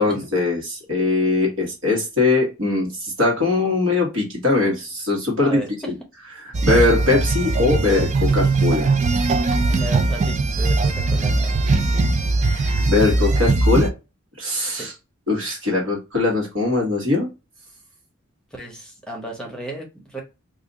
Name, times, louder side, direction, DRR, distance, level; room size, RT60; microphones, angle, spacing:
voice 1, 0.0-5.6 5.9-6.0 6.4-8.9 12.4-13.9 14.4-14.9 15.3-17.3, left 3 dB, 65° right, 0 dB, 1.5 m, -21 dB
voice 2, 5.4-5.9 9.7-11.6 14.7-14.9 18.5-20.2, right 1 dB, 5° left, 0 dB, 0.9 m, -34 dB
sound 1, 6.5-13.9, right 3 dB, 35° right, 0.4 m, -20 dB
2.7 x 2.5 x 3.9 m, 0.27 s
head